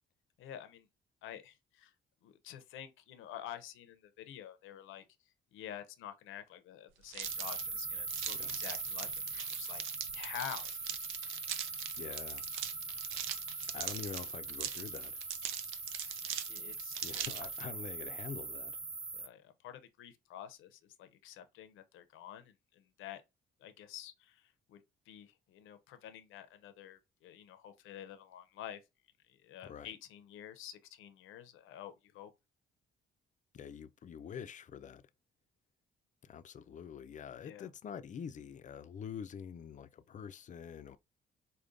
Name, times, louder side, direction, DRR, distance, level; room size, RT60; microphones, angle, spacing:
voice 1, 0.4-0.9 1.2-1.9 2.2-5.0 5.5-9.8 10.1-10.7 16.5-17.0 19.1-23.2 23.6-28.8 29.4-32.3 37.4-37.7, left 10 dB, 90° left, 0.6 m, -49 dB
sound 1, 7.1-17.6, right 10 dB, 85° right, 0.5 m, -42 dB
sound 2, 7.2-19.3, right 4 dB, 20° right, 0.5 m, -41 dB
voice 2, 12.0-12.4 13.7-15.2 17.0-18.8 29.6-29.9 33.5-35.0 36.2-41.0, left 7 dB, 40° left, 0.4 m, -46 dB
5.0 x 2.2 x 2.5 m
cardioid pair, 90°, 20 cm